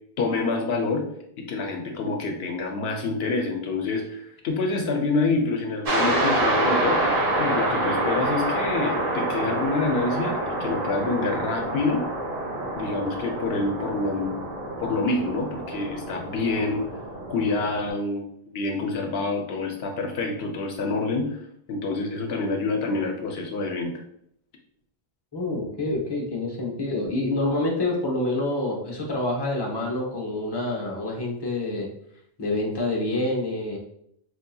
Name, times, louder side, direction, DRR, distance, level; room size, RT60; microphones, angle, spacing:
voice 1, 0.2-1.1 1.4-7.0 7.4-12.1 12.8-14.4 14.8-16.8 17.3-24.0, left 3 dB, 75° left, 2 dB, 0.8 m, -27 dB
sound 1, 5.9-17.9, right 1 dB, 65° right, 1.2 m, -27 dB
voice 2, 25.3-31.9 32.4-33.8, left 2 dB, 25° left, -3 dB, 0.8 m, -27 dB
4.6 x 2.7 x 2.2 m, 0.73 s
omnidirectional pair, 1.1 m